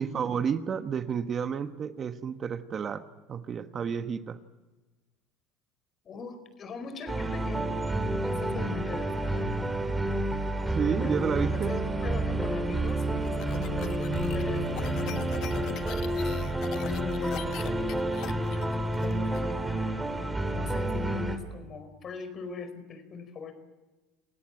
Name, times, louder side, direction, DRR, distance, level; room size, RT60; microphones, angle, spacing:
voice 1, 0.0-3.0 3.3-4.4 10.7-11.8, right 7 dB, 40° right, 10 dB, 1.3 m, -30 dB
voice 2, 6.0-7.8 8.2-9.5 11.0-18.1 19.0-20.0 20.5-23.5, left 4 dB, 40° left, 11 dB, 4.7 m, -41 dB
sound 1, 7.1-21.4, right 1 dB, 10° right, 3.2 m, -29 dB
sound 2, 12.9-19.4, left 12 dB, 55° left, 1.3 m, -42 dB
28.0 x 17.0 x 9.0 m, 1.2 s
hypercardioid pair, 80°, 0 cm